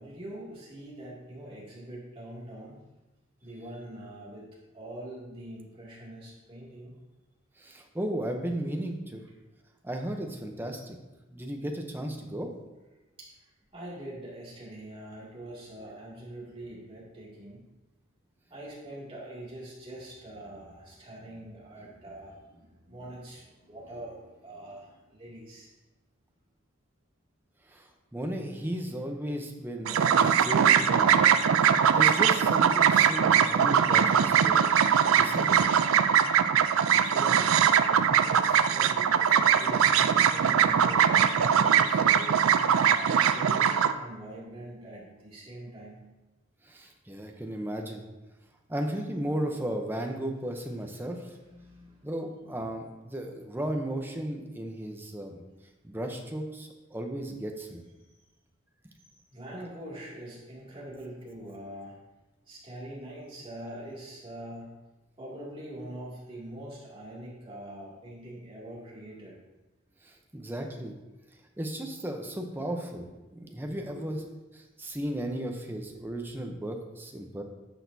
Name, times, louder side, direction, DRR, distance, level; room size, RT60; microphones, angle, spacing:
voice 1, 0.0-2.8 3.4-6.9 13.2-13.3 13.7-17.6 18.5-25.7 37.0-42.4 43.0-46.0 51.4-52.0 59.3-62.0 62.5-64.7 65.2-69.3 73.6-74.2, right 1 dB, 25° right, -6 dB, 2.4 m, -43 dB
voice 2, 7.6-9.2 9.8-11.0 11.3-12.5 27.7-31.2 31.6-34.6 35.2-35.6 46.7-48.1 48.7-51.2 52.0-55.4 55.8-57.8 70.0-70.9 71.6-74.2 74.8-77.4, right 1 dB, 10° right, 3 dB, 0.7 m, -35 dB
sound 1, 29.9-43.9, right 8 dB, 80° right, 0.4 m, -22 dB
10.0 x 6.5 x 2.7 m, 1.1 s
head